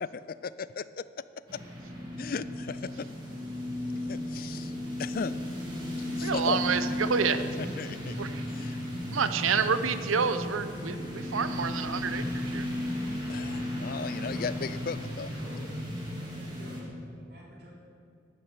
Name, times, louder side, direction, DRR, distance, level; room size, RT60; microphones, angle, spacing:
voice 1, 0.0-1.0 1.5-1.6 2.2-3.1 4.1-4.7 5.0-5.4 6.2-6.6 7.6-8.1 8.6-8.8 13.3-15.3, left 5 dB, 45° left, 16 dB, 0.3 m, -36 dB
sound 1, 1.5-16.8, left 1 dB, 25° right, 2.6 m, -35 dB
voice 2, 6.2-7.4 8.2-8.4 9.1-12.7, right 6 dB, 90° right, 11 dB, 0.7 m, -28 dB
voice 3, 15.1-15.7 16.2-17.7, equal, 50° right, -4 dB, 3.2 m, -49 dB
11.0 x 10.0 x 6.8 m, 2.5 s
head